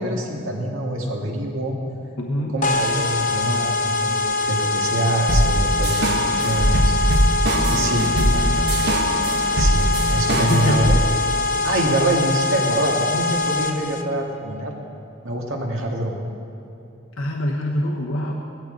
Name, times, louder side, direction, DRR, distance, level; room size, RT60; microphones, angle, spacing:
voice 1, 0.0-1.8 2.5-6.9 7.7-8.5 9.5-10.9 11.6-14.7 15.2-16.2, right 1 dB, 75° right, 0 dB, 1.9 m, -25 dB
voice 2, 2.2-2.6 7.5-9.0 10.3-10.9 17.2-18.3, left 1 dB, 80° left, 0 dB, 1.1 m, -26 dB
sound 1, 2.6-14.0, left 3 dB, 40° left, 0.7 m, -23 dB
sound 2, 5.3-11.0, right 1 dB, 55° right, 1.1 m, -21 dB
17.0 x 13.5 x 3.9 m, 2.8 s
head